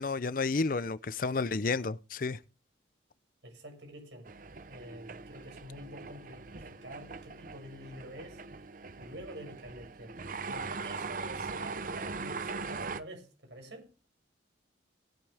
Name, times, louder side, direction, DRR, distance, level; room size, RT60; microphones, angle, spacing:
voice 1, 0.0-2.4, left 4 dB, 45° left, 0.5 m, -31 dB
voice 2, 3.4-4.3 4.7-8.4 9.0-14.1, equal, 70° right, 6.9 m, -47 dB
sound 1, 4.2-13.0, right 4 dB, 45° right, 0.8 m, -41 dB
19.0 x 9.0 x 3.4 m
head